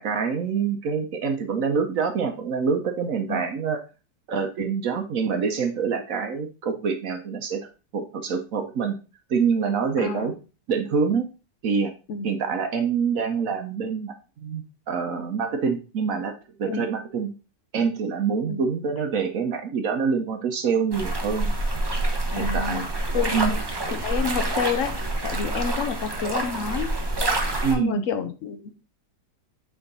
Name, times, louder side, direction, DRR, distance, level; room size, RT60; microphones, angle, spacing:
voice 1, 0.0-3.8 4.3-7.6 7.9-9.0 9.3-10.3 10.7-11.3 11.6-11.9 12.2-14.1 14.4-16.3 16.6-17.3 17.7-21.5 22.4-22.9 23.3-23.6 27.6-28.1, right 6 dB, 60° right, 6 dB, 1.1 m, -25 dB
voice 2, 10.0-10.3 12.1-12.3 16.6-16.9 18.5-18.6 22.3-22.8 23.1-23.4 23.9-24.9 25.2-27.0 27.7-28.7, left 6 dB, 55° left, 9 dB, 1.0 m, -29 dB
sound 1, 20.9-27.7, right 2 dB, 25° right, 0.5 m, -27 dB
8.3 x 3.8 x 3.9 m, 0.32 s
omnidirectional pair, 1.9 m